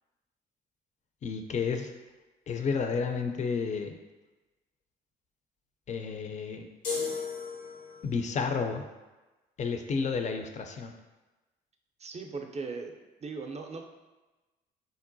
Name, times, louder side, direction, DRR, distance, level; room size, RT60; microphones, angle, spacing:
voice 1, 1.2-1.9 2.5-3.9 5.9-6.7 8.0-8.8 9.6-10.9, left 5 dB, 35° left, 6 dB, 0.4 m, -31 dB
sound 1, 6.8-8.2, left 5 dB, 85° left, 0.8 m, -35 dB
voice 2, 12.0-13.9, right 4 dB, 30° right, 3 dB, 0.4 m, -39 dB
3.8 x 2.1 x 2.6 m, 1.1 s
hypercardioid pair, 55°, 21 cm